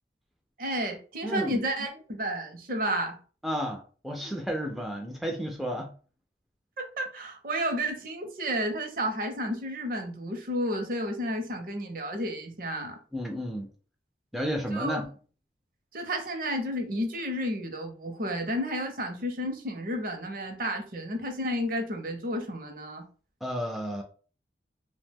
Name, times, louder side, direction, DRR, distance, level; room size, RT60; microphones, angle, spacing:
voice 1, 0.6-3.2 6.8-13.0 14.7-15.0 15.9-23.0, equal, 50° right, 0.6 m, -31 dB
voice 2, 1.2-1.6 3.4-5.9 13.1-13.7 14.3-15.1 23.4-24.0, equal, ahead, 0.3 m, -32 dB
2.7 x 2.1 x 3.3 m
head